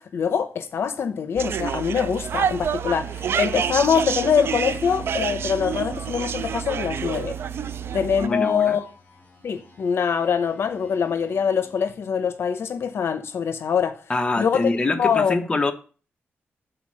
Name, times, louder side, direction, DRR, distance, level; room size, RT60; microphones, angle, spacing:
voice 1, 0.0-7.4 7.9-8.8 9.4-14.0 14.4-14.6 14.9-15.4, left 7 dB, 70° left, 0.7 m, -24 dB
sound 1, 1.1-12.0, equal, 40° left, 3.1 m, -44 dB
sound 2, 1.4-8.3, right 8 dB, 65° right, 0.3 m, -28 dB
voice 2, 8.2-8.8 14.1-15.7, left 2 dB, 20° left, 0.9 m, -24 dB
7.9 x 4.2 x 6.4 m
wide cardioid pair, 130°, 4 cm